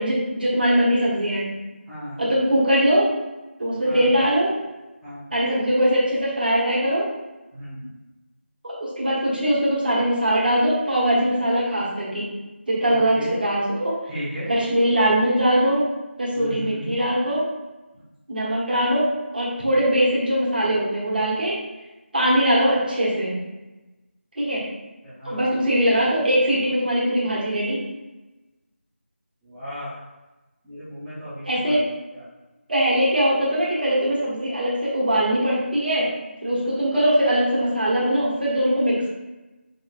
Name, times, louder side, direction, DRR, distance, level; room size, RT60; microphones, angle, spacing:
voice 1, 0.0-1.5 2.2-3.1 3.6-4.5 5.3-7.0 8.6-12.3 12.7-13.9 14.5-15.8 16.2-17.4 18.3-21.5 22.1-23.4 24.4-24.6 25.2-27.8 31.4-31.8 32.7-36.1 36.4-39.1, equal, 50° right, -6 dB, 1.1 m, -21 dB
voice 2, 1.9-2.2 3.8-4.1 5.0-5.3 7.5-7.9 12.9-13.3 14.1-14.5 16.3-17.0 17.9-18.0 25.0-25.5 29.4-30.0 30.6-31.8 32.1-32.2, equal, ahead, -15 dB, 0.4 m, -35 dB
4.8 x 2.4 x 2.5 m, 1.1 s
figure-of-eight pair, 165°, 7 cm